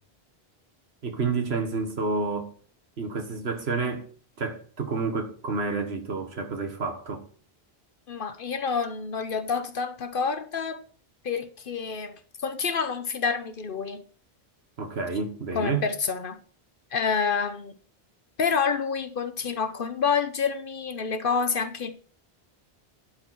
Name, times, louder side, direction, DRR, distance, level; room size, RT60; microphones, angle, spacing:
voice 1, 1.0-2.5 3.0-4.1 4.4-7.2 14.8-15.9, right 4 dB, 90° right, 1.7 m, -29 dB
voice 2, 8.1-10.8 11.2-14.0 15.5-16.4 16.9-17.7 18.4-21.9, left 5 dB, 60° left, 1.0 m, -28 dB
11.5 x 4.5 x 5.8 m
omnidirectional pair, 1.0 m